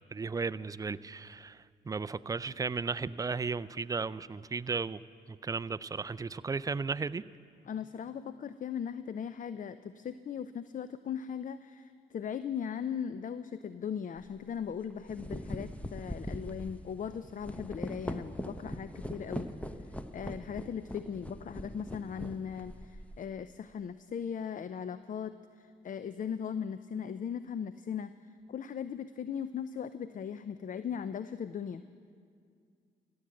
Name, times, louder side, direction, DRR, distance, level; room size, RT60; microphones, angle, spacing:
voice 1, 0.1-5.0 5.3-7.2, right 4 dB, 20° right, 0.3 m, -35 dB
voice 2, 7.7-19.5 19.8-31.8, left 7 dB, 45° left, 0.4 m, -38 dB
sound 1, 14.2-14.4 14.9-23.3, equal, 5° left, 0.8 m, -41 dB
15.5 x 8.7 x 7.7 m
supercardioid pair, 60°, 19 cm